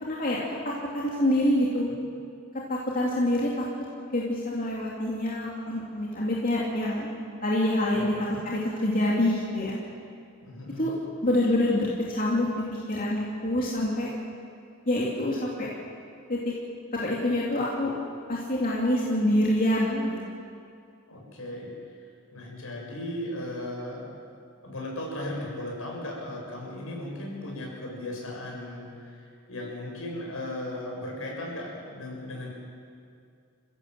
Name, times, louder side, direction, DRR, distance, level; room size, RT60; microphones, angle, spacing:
voice 1, 0.0-0.4 0.9-1.9 2.7-3.6 4.1-7.1 7.4-8.1 8.4-9.7 10.8-10.9 11.2-12.5 12.9-14.1 14.9-15.7 16.3-16.4 17.0-17.9 18.3-20.2, left 1 dB, 40° left, -4 dB, 2.8 m, -26 dB
voice 2, 7.9-8.4 10.4-10.9 21.1-22.0 22.3-24.1 24.6-32.5, left 1 dB, 70° left, -1 dB, 6.5 m, -37 dB
28.5 x 16.5 x 7.6 m, 2.4 s
head